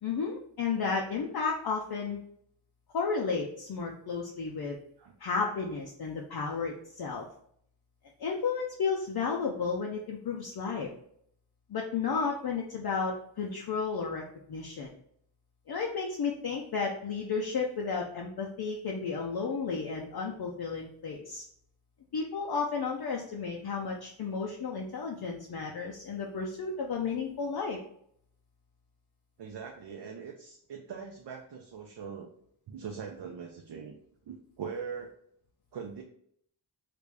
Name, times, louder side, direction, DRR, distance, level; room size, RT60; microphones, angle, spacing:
voice 1, 0.0-2.2 2.9-4.8 5.2-7.3 8.2-10.9 11.7-14.9 15.7-21.4 22.1-27.8, left 5 dB, 55° left, -1 dB, 0.5 m, -33 dB
voice 2, 5.0-5.4 29.4-32.3 32.7-33.9 34.3-35.1 35.7-36.0, right 6 dB, 60° right, 1 dB, 0.5 m, -41 dB
3.3 x 2.5 x 3.3 m, 0.67 s
wide cardioid pair, 160°, 47 cm